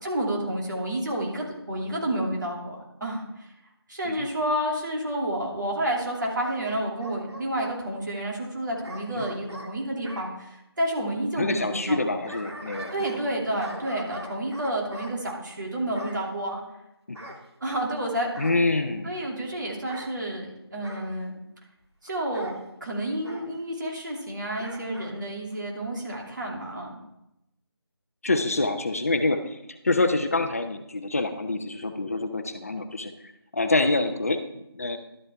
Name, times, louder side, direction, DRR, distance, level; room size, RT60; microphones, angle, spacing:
voice 1, 0.0-3.5 3.9-12.2 12.9-16.6 17.6-18.3 19.0-21.3 22.0-27.0, right 1 dB, 45° right, -2 dB, 2.7 m, -30 dB
Bark / Growling, 6.1-7.8 8.8-10.3 11.9-13.3 13.6-15.2 15.9-16.3 17.1-17.9 18.3-18.7 19.8-20.1 20.8-21.1 22.3-22.6 23.2-23.5 24.6-25.1 25.5-25.6, equal, 90° right, 2.1 m, -42 dB
voice 2, 11.4-13.2 17.1-17.2 18.4-19.2 28.2-33.1 33.5-35.0, left 2 dB, 35° left, 8 dB, 0.7 m, -26 dB
12.0 x 7.5 x 3.5 m, 0.86 s
figure-of-eight pair, 165°, 14 cm